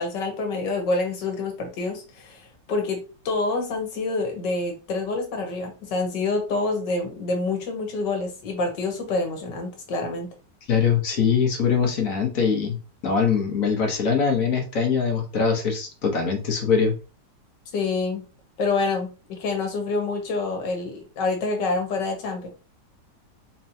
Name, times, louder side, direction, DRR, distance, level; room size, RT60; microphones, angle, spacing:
voice 1, 0.0-10.3 17.7-18.2 18.6-22.5, left 3 dB, 75° left, 3 dB, 1.7 m, -27 dB
voice 2, 10.7-16.9, left 6 dB, 55° left, 2 dB, 1.3 m, -22 dB
4.2 x 3.0 x 2.7 m, 0.33 s
omnidirectional pair, 1.9 m